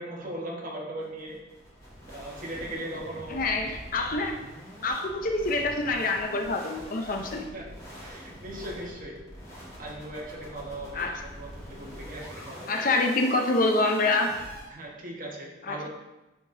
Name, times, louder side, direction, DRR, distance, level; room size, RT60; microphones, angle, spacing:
voice 1, 0.0-1.4 2.1-3.4 7.5-7.7 8.0-9.2 9.8-12.7 14.7-15.9, right 1 dB, 50° right, -1 dB, 1.2 m, -38 dB
sound 1, 1.0-14.6, equal, 20° left, 1.7 m, -44 dB
voice 2, 3.3-4.4 4.8-7.5 10.9-11.2 12.7-14.4 15.7-15.9, left 2 dB, 50° left, 4 dB, 0.6 m, -26 dB
9.8 x 3.7 x 2.6 m, 1.0 s
head